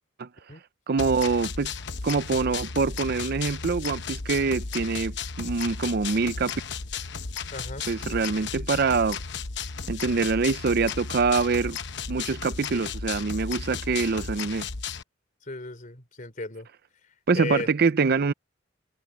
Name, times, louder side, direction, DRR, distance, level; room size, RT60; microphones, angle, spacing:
voice 1, 0.9-1.7 2.0-6.5 7.9-9.2 9.9-11.8 12.1-14.7 17.3-18.3, right 4 dB, 50° right, 0.5 m, -25 dB
sound 1, 1.0-15.0, left 5 dB, 60° left, 1.0 m, -34 dB
voice 2, 7.5-7.9 15.4-16.7 17.3-17.7, left 2 dB, 40° left, 3.8 m, -35 dB
head